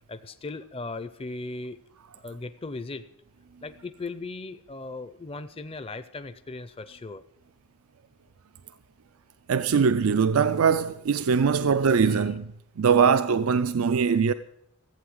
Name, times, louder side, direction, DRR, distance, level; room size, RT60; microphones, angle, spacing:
voice 1, 0.1-1.8 2.1-3.1 3.6-7.2 11.2-12.3, left 3 dB, 25° left, 0.5 m, -38 dB
voice 2, 9.5-12.5 12.8-14.3, right 6 dB, 75° right, 0.4 m, -22 dB
15.0 x 8.6 x 7.8 m
head